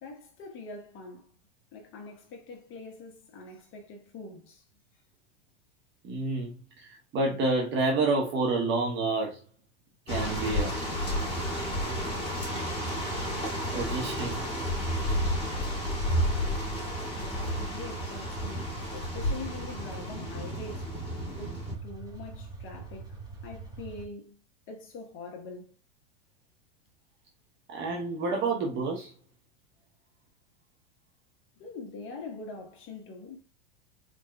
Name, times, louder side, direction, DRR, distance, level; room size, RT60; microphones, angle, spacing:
voice 1, 0.0-1.3 1.7-4.6 17.1-20.9 21.3-24.4 24.7-25.7 31.6-33.4, left 3 dB, 40° left, 1.2 m, -44 dB
voice 2, 6.0-9.4 10.1-10.7 13.7-14.4 27.7-29.1, right 3 dB, 35° right, 1.0 m, -29 dB
sound 1, 10.1-21.7, equal, 20° left, 2.4 m, -31 dB
sound 2, 11.1-24.1, right 4 dB, 10° right, 1.3 m, -44 dB
4.6 x 3.8 x 2.3 m
hypercardioid pair, 115°, 31 cm